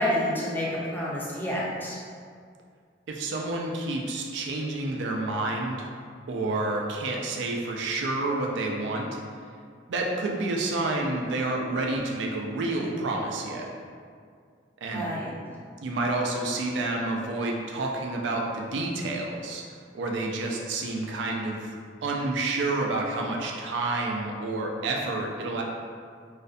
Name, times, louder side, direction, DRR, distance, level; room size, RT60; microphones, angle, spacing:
voice 1, 0.0-2.0 14.9-15.3, left 1 dB, 10° left, -6 dB, 0.4 m, -28 dB
voice 2, 3.1-5.9 6.3-9.1 9.9-13.7 14.8-15.1 15.8-19.6 19.9-21.7 22.0-25.6, right 2 dB, 85° right, 0 dB, 0.3 m, -29 dB
2.5 x 2.1 x 2.4 m, 2.1 s
head